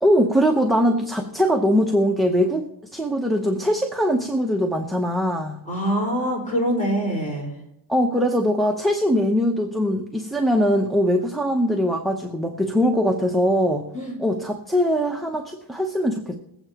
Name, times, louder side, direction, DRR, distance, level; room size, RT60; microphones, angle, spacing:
voice 1, 0.0-2.6 2.9-5.6 7.9-13.9 14.2-16.3, equal, ahead, 2 dB, 0.9 m, -21 dB
voice 2, 5.7-7.6 13.9-14.2, equal, 15° left, -3 dB, 4.9 m, -24 dB
22.5 x 8.8 x 3.0 m, 0.80 s
wide cardioid pair, 115°, 44 cm